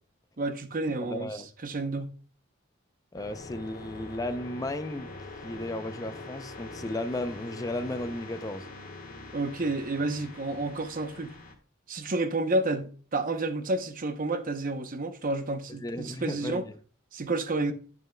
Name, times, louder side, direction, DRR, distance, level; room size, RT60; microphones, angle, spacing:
voice 1, 0.4-2.1 9.3-11.3 11.9-16.6 17.1-17.7, right 2 dB, 40° right, 0.8 m, -30 dB
voice 2, 1.0-1.5 3.1-5.1 5.4-8.7 15.7-16.7, left 1 dB, 20° left, 0.5 m, -34 dB
sound 1, 3.1-11.5, left 2 dB, 45° left, 1.3 m, -43 dB
9.5 x 8.9 x 2.2 m
head